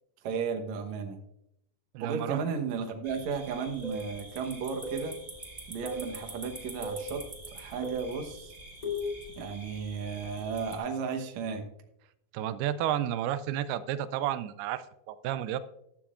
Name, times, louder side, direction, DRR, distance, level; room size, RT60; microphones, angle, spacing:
voice 1, 0.2-1.2 2.0-5.2 5.7-7.3 7.5-8.5 9.4-11.6, right 6 dB, 65° right, 4 dB, 2.0 m, -34 dB
voice 2, 1.9-2.4 12.3-15.6, right 11 dB, 90° right, 13 dB, 2.5 m, -31 dB
sound 1, 3.0-10.8, right 2 dB, 35° right, 0.6 m, -46 dB
sound 2, 3.8-4.1 4.8-5.1 5.8-6.1 6.8-7.1 7.8-8.1 8.8-9.1, left 1 dB, 25° left, 3.5 m, -35 dB
14.0 x 11.5 x 2.5 m, 0.81 s
omnidirectional pair, 4.4 m